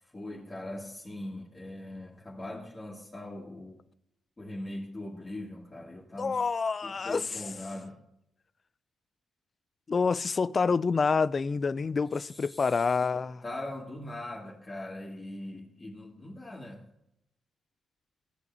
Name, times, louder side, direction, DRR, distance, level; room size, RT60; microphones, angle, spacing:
voice 1, 0.1-3.8 4.4-6.4 6.8-8.0 12.3-12.8 13.1-16.9, left 1 dB, 20° left, 1.9 m, -41 dB
voice 2, 6.2-7.4 9.9-13.4, left 5 dB, 35° left, 0.3 m, -27 dB
16.5 x 8.2 x 2.7 m
cardioid pair, 120°, 0 cm